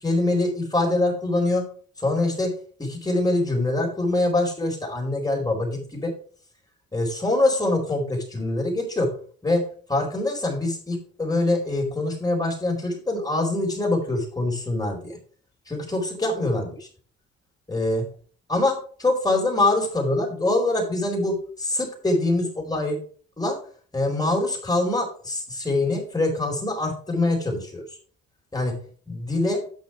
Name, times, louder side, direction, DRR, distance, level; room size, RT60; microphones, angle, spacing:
voice 1, 0.0-1.6 2.0-2.5 2.8-6.1 6.9-9.1 9.4-9.6 9.9-15.1 15.7-16.7 17.7-18.0 18.5-23.0 23.4-23.6 23.9-27.8 28.5-28.7 29.1-29.6, left 2 dB, 10° left, 0 dB, 4.4 m, -24 dB
9.0 x 6.4 x 4.6 m, 0.43 s
cardioid pair, 90°, 30 cm